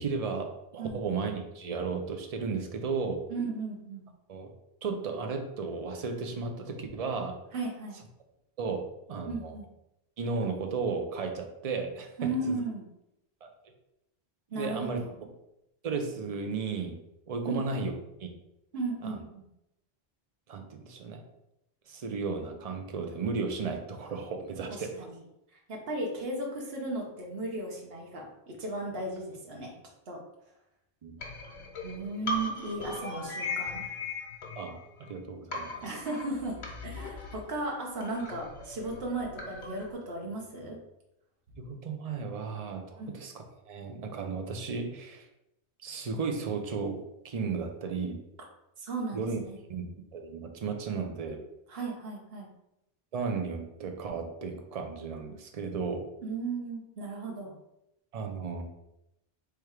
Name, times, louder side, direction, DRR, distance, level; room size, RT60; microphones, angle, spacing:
voice 1, 0.0-3.3 4.3-4.5 4.8-7.4 8.6-9.5 10.2-12.6 13.4-13.5 14.5-15.0 15.8-17.0 17.3-17.9 18.2-18.3 19.0-19.2 20.5-21.2 21.9-25.1 31.0-31.2 34.6-35.8 41.6-43.3 43.7-45.3 45.8-47.0 47.2-48.2 49.1-49.4 49.7-51.4 53.1-56.1 58.1-58.6, right 4 dB, 40° right, 5 dB, 0.6 m, -34 dB
voice 2, 3.3-4.1 7.5-8.0 9.3-9.6 12.2-12.8 14.5-15.1 17.5-17.6 18.7-19.4 24.7-25.2 25.7-29.7 30.1-30.2 31.8-33.8 35.8-36.6 36.8-40.8 43.0-43.2 48.8-49.6 51.7-52.5 56.2-57.5, right 2 dB, 65° right, -1 dB, 1.2 m, -35 dB
sound 1, 31.2-35.2 35.5-39.9, left 3 dB, 80° left, 1.2 m, -38 dB
3.4 x 3.2 x 4.8 m, 0.85 s
omnidirectional pair, 1.1 m